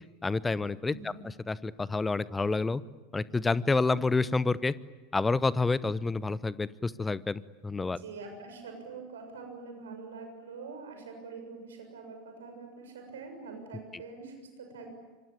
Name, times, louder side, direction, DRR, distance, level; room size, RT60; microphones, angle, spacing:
voice 1, 0.2-2.8 3.1-4.7 5.1-8.0, left 3 dB, 15° left, 19 dB, 0.8 m, -29 dB
voice 2, 0.9-1.2 8.0-14.9, right 4 dB, 70° right, 4 dB, 6.9 m, -45 dB
26.0 x 25.0 x 9.0 m, 1.3 s
figure-of-eight pair, 80°, 0 cm